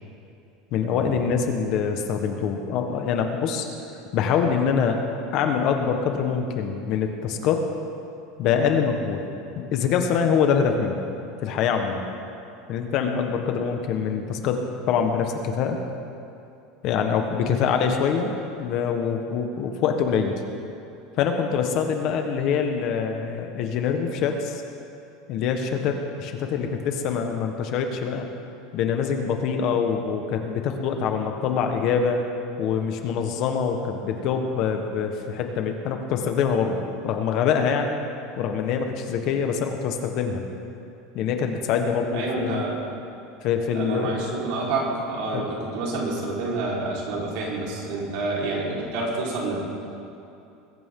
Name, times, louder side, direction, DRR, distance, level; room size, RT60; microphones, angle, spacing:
voice 1, 0.7-3.6 4.1-5.0 5.3-7.7 8.4-9.2 9.5-11.0 11.4-12.0 12.7-15.8 16.8-18.3 18.6-20.3 21.2-24.6 25.3-28.3 28.7-32.2 32.6-38.0 38.4-40.4 41.1-42.7 43.4-44.2 45.3-45.4, left 6 dB, 45° left, 5 dB, 1.3 m, -24 dB
voice 2, 42.1-42.8 43.7-49.6, right 2 dB, 60° right, -3 dB, 4.3 m, -28 dB
22.0 x 15.0 x 3.8 m, 2.7 s
supercardioid pair, 170°, 0 cm